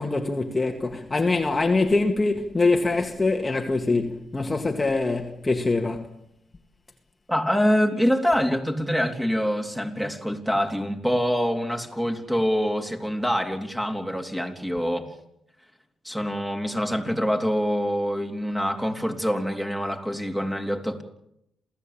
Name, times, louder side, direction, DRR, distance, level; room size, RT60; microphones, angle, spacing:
voice 1, 0.0-6.1, left 3 dB, 20° left, 2.0 m, -24 dB
voice 2, 7.3-15.1 16.0-21.0, equal, 5° right, 3.7 m, -25 dB
28.0 x 16.0 x 8.8 m
cardioid pair, 90°, 0 cm